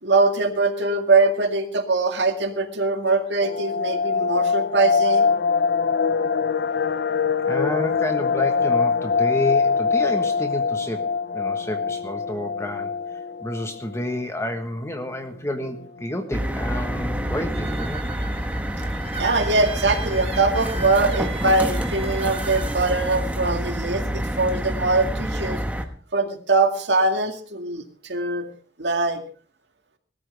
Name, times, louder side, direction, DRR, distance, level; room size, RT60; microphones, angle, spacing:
voice 1, 0.0-5.3 19.2-25.6 26.1-28.5 28.8-29.2, right 3 dB, 75° right, 5 dB, 2.1 m, -22 dB
sound 1, 3.4-14.2 14.5-14.6 15.0-15.1 15.6-16.0 16.5-16.6 16.8-17.3 17.6-17.7, left 5 dB, 70° left, 0.6 m, -23 dB
voice 2, 7.5-12.9 13.4-18.0, left 1 dB, 15° left, 5 dB, 1.3 m, -30 dB
sound 2, 16.3-25.8, equal, 10° right, 1.3 m, -27 dB
sound 3, 17.2-22.8, right 5 dB, 35° right, 1.5 m, -38 dB
20.0 x 13.5 x 3.4 m, 0.43 s
head